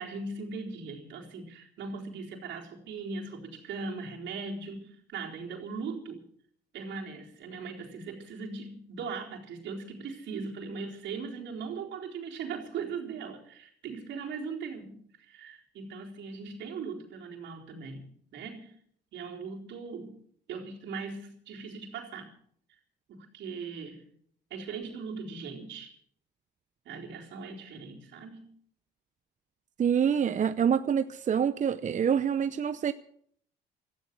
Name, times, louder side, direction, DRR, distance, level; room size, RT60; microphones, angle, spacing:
voice 1, 0.0-6.2 6.7-18.0 18.3-18.7 19.1-20.2 20.5-22.3 23.1-24.0 24.5-25.9 26.8-28.5, right 4 dB, 70° right, 4.1 m, -39 dB
voice 2, 29.8-32.9, right 8 dB, 40° right, 0.7 m, -26 dB
16.5 x 14.0 x 6.1 m
supercardioid pair, 75°, 19 cm